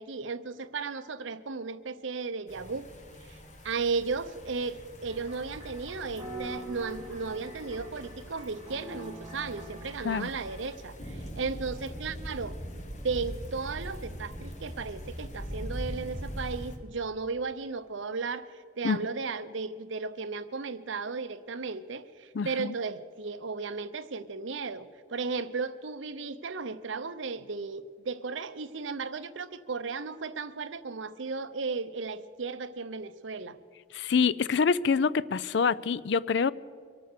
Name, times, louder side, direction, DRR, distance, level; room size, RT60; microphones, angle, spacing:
voice 1, 0.0-2.9 3.3-12.6 13.0-33.6, right 4 dB, 75° right, 13 dB, 0.7 m, -35 dB
sound 1, 2.5-16.8, equal, 40° left, 1.4 m, -42 dB
sound 2, 5.1-10.7, right 2 dB, 15° right, 2.6 m, -45 dB
voice 2, 22.3-22.7 33.9-36.5, left 5 dB, 60° left, 19 dB, 0.4 m, -26 dB
24.0 x 9.0 x 6.7 m, 2.2 s
head